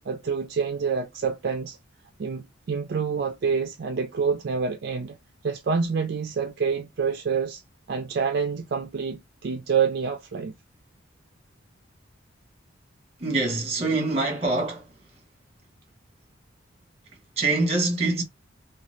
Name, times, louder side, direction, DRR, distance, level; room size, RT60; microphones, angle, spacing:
voice 1, 0.1-1.8 2.2-5.2 5.4-7.6 7.9-10.5, right 5 dB, 55° right, 0.4 m, -27 dB
voice 2, 13.2-15.0 17.4-18.2, right 3 dB, 30° right, 1.1 m, -25 dB
2.7 x 2.3 x 3.1 m
head